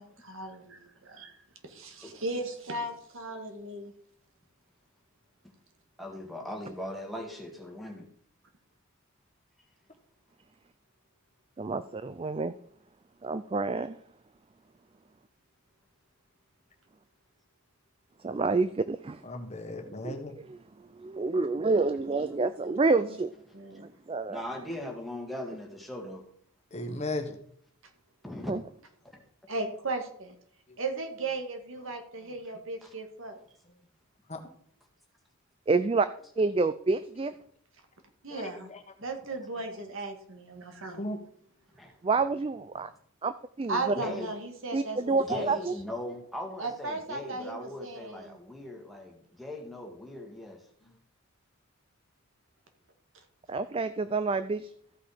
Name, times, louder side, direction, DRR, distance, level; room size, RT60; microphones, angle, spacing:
voice 1, 0.0-1.4 1.6-3.9 22.4-23.2 23.5-23.9 29.5-30.3 30.8-33.4 38.2-38.7 39.0-41.1 43.7-45.6 46.6-48.4, right 2 dB, 65° right, 5 dB, 1.9 m, -36 dB
voice 2, 6.0-8.1 24.3-26.3 28.2-28.5 29.0-29.2 32.8-32.9 39.5-39.6 41.8-41.9 44.0-44.3 45.2-50.6, left 1 dB, ahead, 0 dB, 1.9 m, -39 dB
voice 3, 11.6-12.5 13.2-14.0 18.2-19.2 20.0-20.6 21.0-23.3 23.8-24.4 28.5-28.6 35.7-36.1 36.4-37.3 42.0-42.9 43.2-43.9 44.7-45.7 53.5-54.7, right 3 dB, 25° right, 12 dB, 0.3 m, -28 dB
voice 4, 19.3-20.3 26.7-27.3 34.3-34.4 38.3-38.5 41.0-41.2, left 2 dB, 30° left, 5 dB, 1.3 m, -35 dB
14.5 x 5.8 x 5.0 m, 0.64 s
head